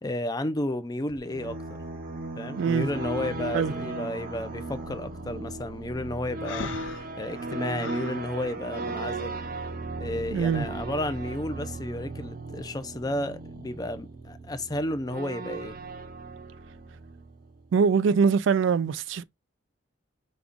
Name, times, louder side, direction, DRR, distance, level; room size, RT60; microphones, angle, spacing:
voice 1, 0.0-1.8 2.4-6.7 7.2-9.4 10.0-15.8, left 1 dB, 20° left, 0.5 m, -32 dB
sound 1, 1.1-17.7, right 2 dB, 45° right, 0.7 m, -37 dB
voice 2, 2.6-2.9 3.5-3.7 10.3-10.7 17.7-19.2, right 6 dB, 70° right, 0.3 m, -23 dB
Breathing, 6.4-8.2, left 5 dB, 70° left, 0.6 m, -38 dB
5.2 x 2.3 x 3.6 m
head